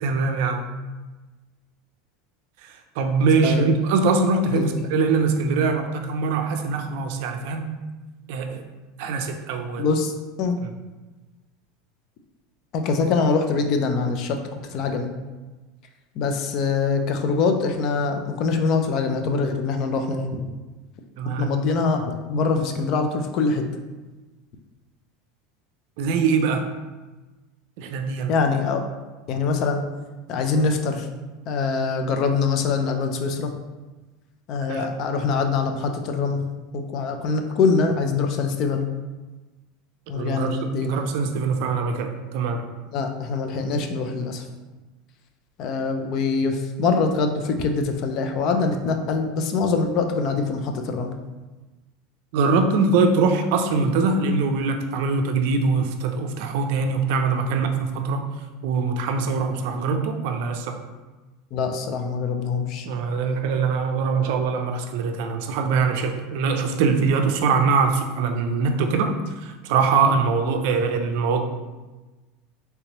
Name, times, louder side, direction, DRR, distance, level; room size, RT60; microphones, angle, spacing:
voice 1, 0.0-0.7 2.6-7.8 8.3-8.6 9.0-9.8 21.2-21.5 26.0-26.7 27.8-28.3 34.7-34.9 40.1-42.7 52.3-58.3 58.6-60.8 62.8-69.2 69.4-71.4, right 4 dB, 70° right, 6 dB, 0.4 m, -23 dB
voice 2, 9.8-10.1 10.4-10.6 12.7-14.4 14.7-15.1 16.2-20.5 21.4-23.6 28.3-28.8 29.3-29.9 30.3-31.1 31.5-33.5 34.5-36.5 36.7-38.9 40.1-41.1 42.9-44.4 45.6-51.1 61.5-62.9 70.1-70.2, left 4 dB, 50° left, 5 dB, 0.4 m, -24 dB
3.3 x 2.9 x 2.9 m, 1.2 s
supercardioid pair, 130°, 0 cm